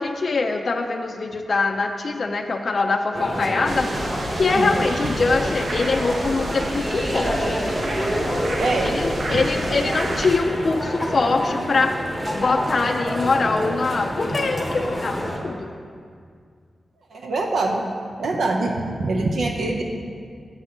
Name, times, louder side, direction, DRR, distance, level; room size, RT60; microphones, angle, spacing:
voice 1, 0.0-3.9 4.4-7.6 8.8-12.0 12.3-15.7, left 3 dB, 40° left, 2 dB, 0.4 m, -23 dB
sound 1, 3.1-15.4, equal, 10° right, 1.1 m, -28 dB
sound 2, 3.7-10.4, right 2 dB, 45° right, 0.6 m, -31 dB
voice 2, 8.6-8.9 9.3-9.4 17.1-17.9 18.2-19.8, right 2 dB, 80° right, 1 dB, 0.6 m, -24 dB
7.1 x 5.9 x 6.5 m, 2.2 s
wide cardioid pair, 175°, 0 cm